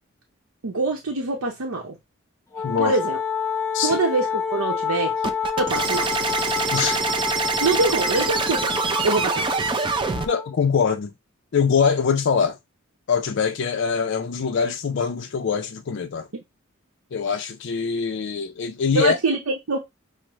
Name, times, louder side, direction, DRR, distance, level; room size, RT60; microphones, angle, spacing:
voice 1, 0.6-2.0 2.8-3.2 3.8-6.1 7.6-8.7 9.0-9.5 18.9-19.8, right 3 dB, 85° right, 0.7 m, -24 dB
Wind instrument woodwind instrument, 2.5-10.5, left 6 dB, 15° left, 0.7 m, -28 dB
voice 2, 2.6-3.0 3.7-4.0 6.7-7.0 10.3-11.1 11.5-12.6 13.1-16.3 17.1-19.2, left 6 dB, 55° left, 0.4 m, -23 dB
sound 1, 5.2-10.3, right 4 dB, 20° right, 0.4 m, -25 dB
6.0 x 2.0 x 3.0 m
head